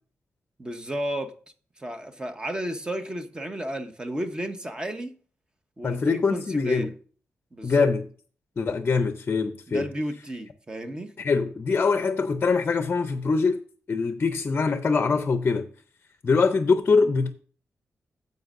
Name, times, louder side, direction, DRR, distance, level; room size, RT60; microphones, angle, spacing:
voice 1, 0.6-1.3 1.8-5.2 5.8-6.9 7.5-7.9 9.7-11.1, right 1 dB, 15° right, 0.9 m, -33 dB
voice 2, 5.8-6.9 7.6-8.0 8.6-9.9 11.2-13.6 13.9-15.7 16.2-17.3, left 4 dB, 40° left, 0.6 m, -23 dB
15.5 x 5.3 x 2.6 m
wide cardioid pair, 160°, 5 cm